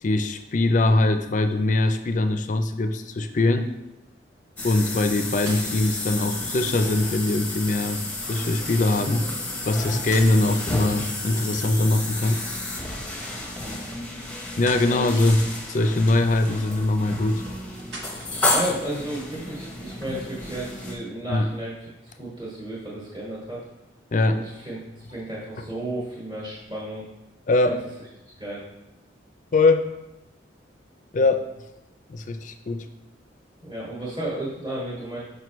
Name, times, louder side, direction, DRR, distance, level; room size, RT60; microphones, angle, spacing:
voice 1, 0.0-3.7 4.6-8.0 8.3-9.3 9.7-12.4 14.6-17.4 21.3-21.5 24.1-24.5 27.5-27.8 29.5-29.8 31.1-31.5 32.1-32.9, left 2 dB, 40° left, 8 dB, 0.4 m, -22 dB
sound 1, 4.6-20.9, left 2 dB, 10° left, 0.7 m, -31 dB
sound 2, 5.4-6.0 7.9-8.4 9.8-11.2 13.1-13.3 14.0-14.1 14.5-14.9 16.2-16.9 17.8-18.6, right 2 dB, 70° right, 1.0 m, -41 dB
voice 2, 8.9-9.3 14.9-15.2 18.5-21.7 22.2-23.6 24.3-24.8 25.1-27.0 27.6-27.8 28.4-28.6 33.6-35.2, right 1 dB, 25° right, -7 dB, 1.3 m, -33 dB
6.0 x 5.3 x 3.0 m, 0.96 s
head